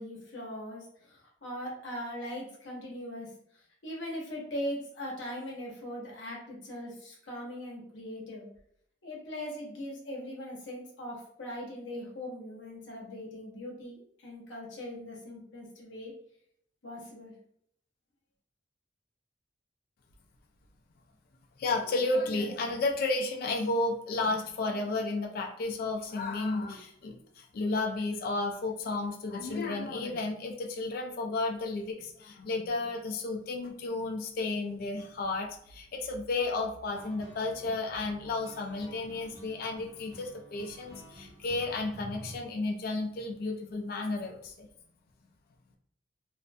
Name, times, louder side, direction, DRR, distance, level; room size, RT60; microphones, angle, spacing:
voice 1, 0.0-3.3 3.8-8.5 9.0-16.1 16.8-17.3, equal, 90° left, -2 dB, 0.7 m, -40 dB
voice 2, 21.6-44.7, left 3 dB, 55° left, 1 dB, 0.3 m, -32 dB
sound 1, 36.9-42.4, right 1 dB, 20° right, 0.5 m, -49 dB
2.5 x 2.1 x 2.5 m, 0.69 s
head